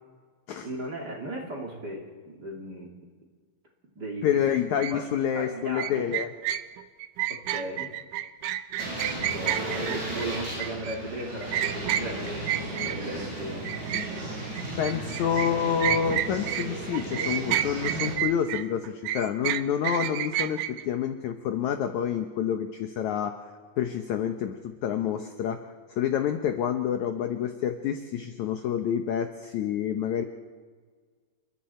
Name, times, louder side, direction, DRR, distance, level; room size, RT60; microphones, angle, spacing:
voice 1, 0.6-2.9 3.9-4.3 4.9-5.1 5.3-6.2 7.3-7.9 9.1-13.7, right 1 dB, 30° right, 0 dB, 2.8 m, -37 dB
voice 2, 4.2-6.3 14.8-23.4 23.8-30.2, left 9 dB, 75° left, 6 dB, 1.7 m, -28 dB
sound 1, 4.8-4.9 5.8-13.3 13.6-16.7 16.9-20.8, right 12 dB, 85° right, 1.9 m, -30 dB
sound 2, 8.8-18.2, right 1 dB, 45° right, 6.3 m, -35 dB
29.0 x 22.0 x 4.4 m, 1.5 s
omnidirectional pair, 4.7 m